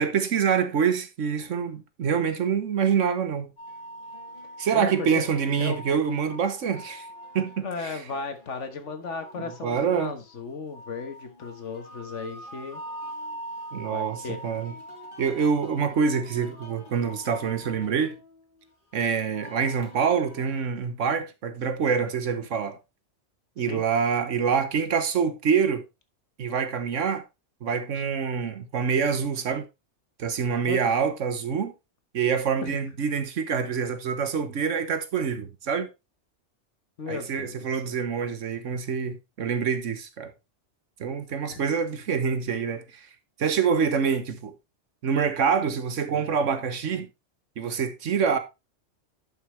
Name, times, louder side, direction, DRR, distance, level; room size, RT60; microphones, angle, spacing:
voice 1, 0.0-3.5 4.6-7.1 7.3-8.0 9.4-10.1 13.7-14.7 15.2-18.2 18.9-22.8 23.6-25.8 26.4-27.2 27.6-29.6 30.2-31.7 32.1-35.9 37.1-40.3 41.0-43.1 43.4-44.5 45.0-47.1 47.6-48.4, right 6 dB, 90° right, 1.4 m, -26 dB
sound 1, 3.6-20.6, equal, 45° left, 2.1 m, -44 dB
voice 2, 4.7-5.2 5.6-5.8 7.6-12.8 13.8-14.4 23.6-23.8 30.7-31.0 32.6-32.8 37.0-38.0 41.3-41.6, left 5 dB, 75° left, 1.6 m, -36 dB
11.0 x 5.8 x 3.2 m
omnidirectional pair, 1.2 m